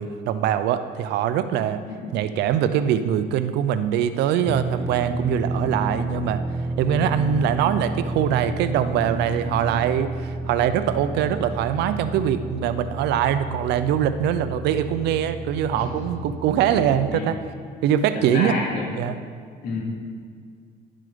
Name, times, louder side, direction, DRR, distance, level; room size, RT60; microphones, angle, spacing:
voice 1, 0.0-1.8 2.1-6.4 6.8-17.4 17.8-18.5 18.9-19.1, right 9 dB, 85° right, 11 dB, 0.6 m, -23 dB
sound 1, 4.5-17.2, right 2 dB, 15° right, 0.5 m, -31 dB
voice 2, 15.7-16.2 16.7-16.8 17.1-17.3 18.1-18.8 19.6-19.8, left 3 dB, 70° left, -4 dB, 3.2 m, -29 dB
11.0 x 7.5 x 5.1 m, 2.1 s
cardioid pair, 110°, 17 cm